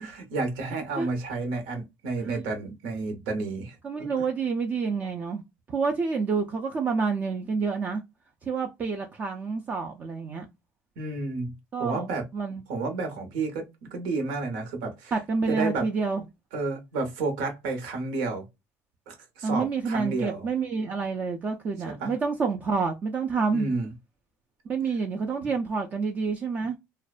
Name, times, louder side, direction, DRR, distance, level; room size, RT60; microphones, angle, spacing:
voice 1, 0.0-4.3 11.0-11.5 11.8-12.3 12.7-15.1 15.5-15.9 16.5-18.5 19.1-20.5 21.8-22.1 23.5-23.9, right 3 dB, 85° right, 0.9 m, -31 dB
voice 2, 3.8-5.4 5.7-8.0 8.5-10.5 11.7-12.1 12.3-12.6 15.1-16.2 19.4-23.7 24.7-26.8, right 4 dB, 25° right, 0.4 m, -28 dB
2.5 x 2.1 x 2.3 m
cardioid pair, 145°, 6 cm